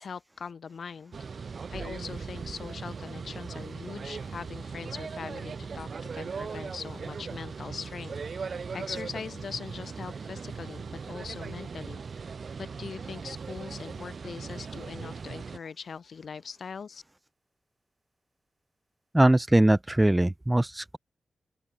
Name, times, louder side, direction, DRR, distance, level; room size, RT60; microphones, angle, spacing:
voice 1, 0.0-17.0, left 6 dB, 70° left, 2.5 m, -41 dB
sound 1, 1.1-15.6, right 5 dB, 60° right, 3.1 m, -39 dB
voice 2, 19.1-21.0, right 1 dB, 15° right, 0.9 m, -21 dB
open air
wide cardioid pair, 85°, 0 cm